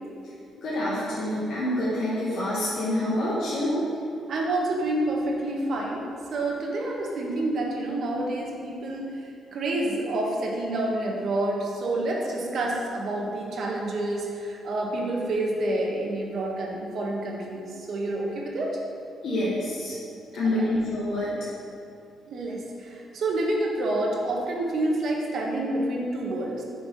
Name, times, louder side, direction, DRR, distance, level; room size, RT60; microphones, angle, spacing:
voice 1, 0.6-3.8 19.2-19.9 20.3-21.3, left 1 dB, 65° left, -8 dB, 1.5 m, -27 dB
voice 2, 4.3-18.8 20.6-20.7 22.3-26.6, right 1 dB, 60° right, -1 dB, 1.3 m, -28 dB
6.2 x 4.6 x 5.3 m, 2.6 s
cardioid pair, 90°, 0 cm